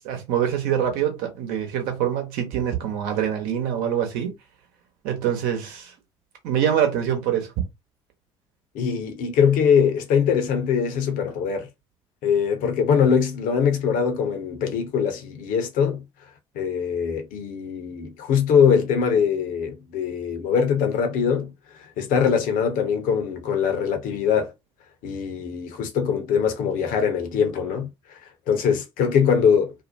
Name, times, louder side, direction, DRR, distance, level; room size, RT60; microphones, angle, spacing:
voice 1, 0.0-4.3 5.0-5.9 6.4-7.5, right 9 dB, 65° right, 1.0 m, -25 dB
voice 2, 8.7-11.7 12.2-16.0 16.5-21.5 22.0-24.5 25.0-27.9 28.5-29.7, left 7 dB, 60° left, 0.8 m, -22 dB
2.6 x 2.1 x 2.6 m
hypercardioid pair, 55°, 16 cm